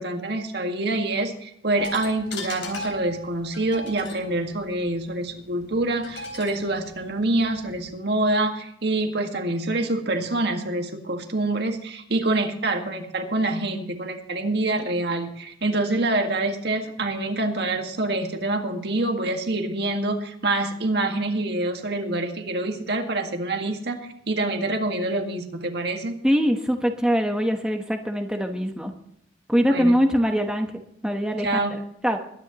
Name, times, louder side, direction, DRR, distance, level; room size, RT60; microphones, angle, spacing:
voice 1, 0.0-26.2 29.7-30.0 31.4-31.7, right 2 dB, 60° right, 4 dB, 1.8 m, -26 dB
sound 1, 1.8-7.9, left 1 dB, 75° left, 3.9 m, -39 dB
voice 2, 26.2-28.9 29.5-30.7 31.0-32.2, equal, 5° right, 3 dB, 1.1 m, -23 dB
22.0 x 10.5 x 3.0 m, 0.71 s
head